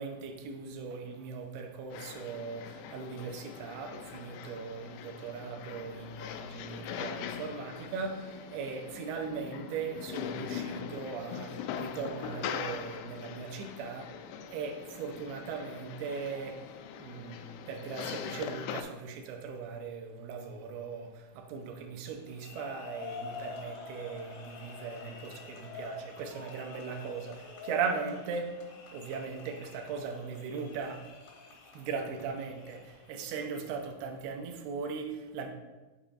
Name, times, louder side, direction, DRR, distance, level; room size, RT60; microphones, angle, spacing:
voice 1, 0.0-14.2 14.5-31.2 31.7-35.5, right 5 dB, 90° right, 4 dB, 2.8 m, -39 dB
sound 1, 1.9-18.8, left 8 dB, 90° left, 2.5 m, -42 dB
sound 2, 22.2-33.3, left 3 dB, 75° left, 2.9 m, -47 dB
8.8 x 7.1 x 2.5 m, 1.2 s
omnidirectional pair, 4.4 m